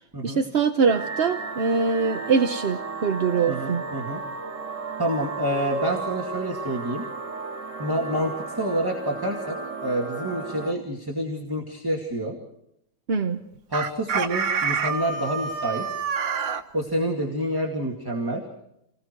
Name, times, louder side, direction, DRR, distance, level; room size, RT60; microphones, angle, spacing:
voice 1, 0.2-3.8 13.1-13.4, right 5 dB, 45° right, 6 dB, 0.8 m, -23 dB
sound 1, 0.9-10.7, right 4 dB, 65° right, 2.5 m, -34 dB
voice 2, 3.5-4.2 5.0-7.0 7.8-9.6 9.8-12.4 13.7-15.9 16.7-18.4, right 1 dB, 10° right, 0 dB, 2.2 m, -28 dB
Chicken rooster, 13.7-16.6, right 6 dB, 85° right, 1.9 m, -27 dB
28.5 x 20.0 x 4.6 m, 0.79 s
omnidirectional pair, 2.0 m